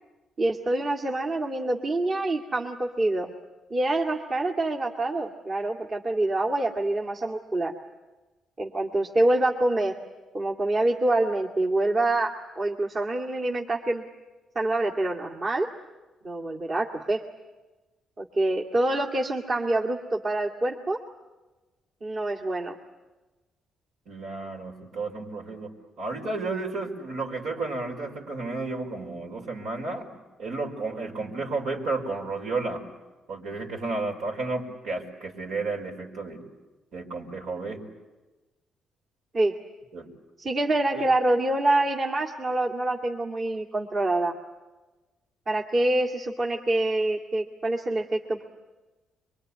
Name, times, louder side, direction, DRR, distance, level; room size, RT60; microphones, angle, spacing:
voice 1, 0.4-3.3 3.7-7.7 8.6-10.0 10.3-14.0 14.6-15.7 16.2-17.2 18.2-21.0 22.0-22.8 39.3-39.6 40.4-44.3 45.5-48.4, right 2 dB, 40° right, 0 dB, 2.1 m, -26 dB
voice 2, 24.1-25.7 26.0-30.1 30.4-32.8 33.3-36.4 36.9-37.8 39.9-40.1 40.9-41.1, right 3 dB, 80° right, 1 dB, 5.0 m, -32 dB
24.0 x 23.5 x 9.7 m, 1.2 s
cardioid pair, 90°, 0 cm